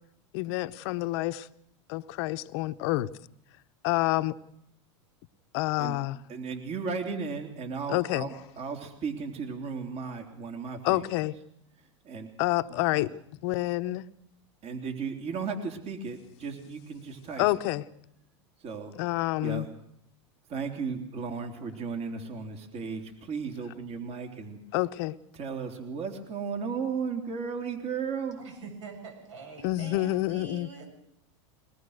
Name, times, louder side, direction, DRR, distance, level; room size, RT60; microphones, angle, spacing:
voice 1, 0.3-1.5 1.9-3.1 3.8-4.3 5.5-6.1 7.9-8.3 10.8-11.3 12.4-13.1 13.4-14.0 17.4-17.8 19.0-19.7 24.7-25.1 29.6-30.7, left 18 dB, 60° left, 0.9 m, -28 dB
voice 2, 6.3-11.2 11.8-12.3 12.7-13.1 14.6-17.6 18.6-19.0 19.4-19.7 20.5-24.6 25.3-28.4, right 5 dB, 45° right, 3.5 m, -35 dB
voice 3, 28.4-30.9, right 4 dB, 80° right, 7.9 m, -44 dB
22.5 x 20.0 x 6.6 m
hypercardioid pair, 115°, 16 cm